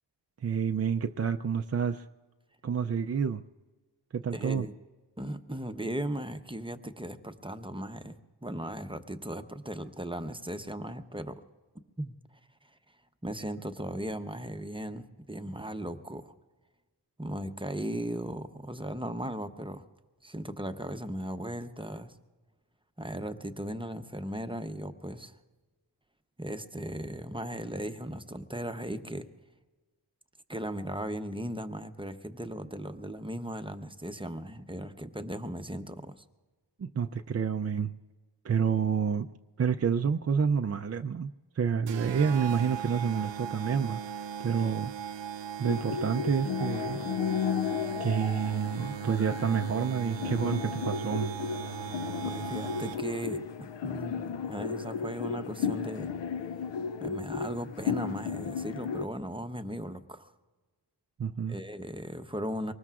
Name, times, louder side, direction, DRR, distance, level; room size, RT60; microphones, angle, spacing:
voice 1, 0.4-2.0 2.6-3.4 4.1-4.7 36.8-37.9 38.4-39.3 39.6-41.3 41.6-44.9 45.6-47.1 48.0-51.3 61.2-61.6, right 6 dB, 35° right, 5 dB, 0.4 m, -29 dB
voice 2, 4.3-4.7 5.2-8.2 8.4-11.4 12.0-12.1 13.2-16.3 17.2-19.8 20.2-22.1 23.0-25.4 26.4-29.3 30.5-36.2 52.2-53.4 53.8-56.1 57.0-60.3 61.5-62.7, right 1 dB, 10° right, 8 dB, 0.8 m, -37 dB
sound 1, 41.9-53.3, right 8 dB, 85° right, 0.6 m, -39 dB
sound 2, 45.6-59.1, left 6 dB, 75° left, 0.6 m, -34 dB
24.0 x 19.5 x 2.4 m, 1.3 s
wide cardioid pair, 70°, 43 cm